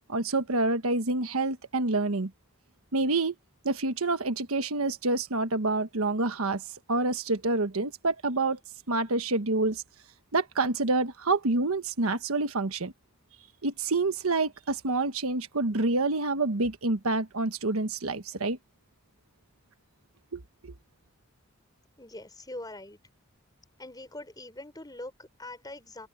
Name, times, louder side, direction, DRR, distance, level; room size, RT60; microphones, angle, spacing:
voice 1, 0.0-2.3 2.9-3.3 3.6-6.6 6.9-8.6 8.9-9.8 10.3-12.9 13.6-18.6 20.3-20.7, right 2 dB, 85° right, 1.3 m, -27 dB
voice 2, 22.0-23.0 23.8-26.1, left 1 dB, 20° left, 5.1 m, -43 dB
head